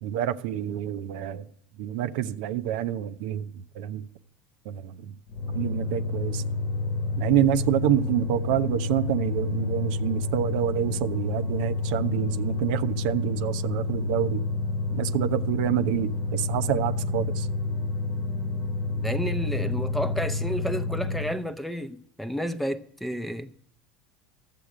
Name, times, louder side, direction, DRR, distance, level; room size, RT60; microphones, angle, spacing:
voice 1, 0.0-1.5 1.8-4.1 4.7-5.1 5.5-6.4 7.2-14.4 14.9-17.5, right 11 dB, 75° right, 0.6 m, -27 dB
sound 1, 5.3-21.4, left 3 dB, 40° left, 1.1 m, -29 dB
voice 2, 19.0-23.5, equal, ahead, 0.6 m, -31 dB
12.0 x 7.7 x 4.9 m
supercardioid pair, 100°, 5 cm